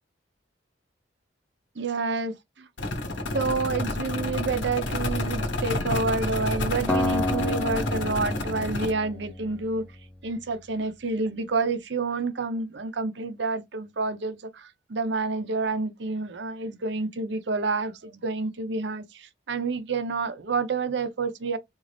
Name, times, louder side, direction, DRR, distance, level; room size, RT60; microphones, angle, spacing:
voice 1, 1.8-2.7 3.3-9.8 10.2-21.6, right 3 dB, 65° right, 0.6 m, -29 dB
sound 1, 2.8-8.9, left 1 dB, 75° left, 1.0 m, -29 dB
Acoustic guitar, 6.9-10.0, left 2 dB, 5° left, 0.5 m, -30 dB
3.8 x 2.5 x 3.2 m
head